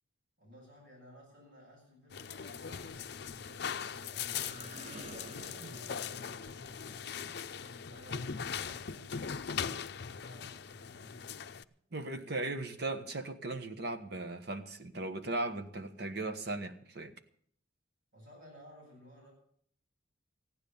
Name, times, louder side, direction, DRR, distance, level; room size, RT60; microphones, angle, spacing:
voice 1, 0.4-3.8 4.1-7.4 7.9-11.2 18.1-19.3, equal, 80° right, -3 dB, 7.9 m, -56 dB
sound 1, 2.1-11.6, left 7 dB, 55° left, 0.5 m, -40 dB
sound 2, 3.9-9.4, right 1 dB, 35° right, 1.4 m, -53 dB
voice 2, 11.9-17.1, right 2 dB, 55° right, 7 dB, 1.3 m, -37 dB
15.0 x 9.9 x 7.0 m, 0.63 s
head